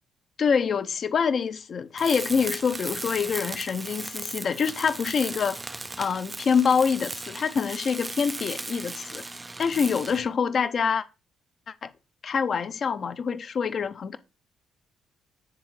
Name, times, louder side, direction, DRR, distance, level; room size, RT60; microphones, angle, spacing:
voice 1, 0.4-5.6 6.0-9.2 9.6-11.0 11.8-11.9 12.2-14.2, left 6 dB, 55° left, 0.5 m, -25 dB
Tools, 2.0-10.3, right 2 dB, 20° right, 0.3 m, -37 dB
9.1 x 3.6 x 3.1 m
hypercardioid pair, 50°, 0 cm